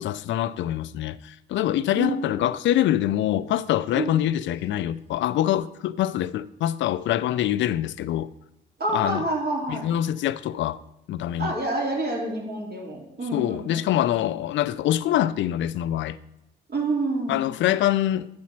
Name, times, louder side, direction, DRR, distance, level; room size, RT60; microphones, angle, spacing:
voice 1, 0.0-8.3 8.9-9.2 9.7-10.8 11.1-11.5 13.3-16.2 17.3-18.3, left 12 dB, 70° left, 0.4 m, -25 dB
voice 2, 8.8-9.9 11.4-13.8 16.7-17.4, right 2 dB, 50° right, 2.8 m, -28 dB
9.5 x 4.3 x 5.8 m
cardioid pair, 90°, 20 cm